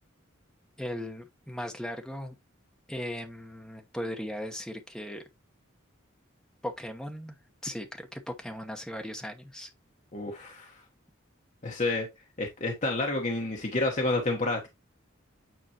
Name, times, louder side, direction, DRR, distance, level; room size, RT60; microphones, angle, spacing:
voice 1, 0.8-2.4 2.9-5.2 6.6-7.4 7.6-9.7, left 1 dB, 5° left, 1.0 m, -37 dB
voice 2, 10.1-10.8 11.6-12.1 12.4-14.7, left 2 dB, 35° left, 1.1 m, -29 dB
9.1 x 4.1 x 2.9 m
head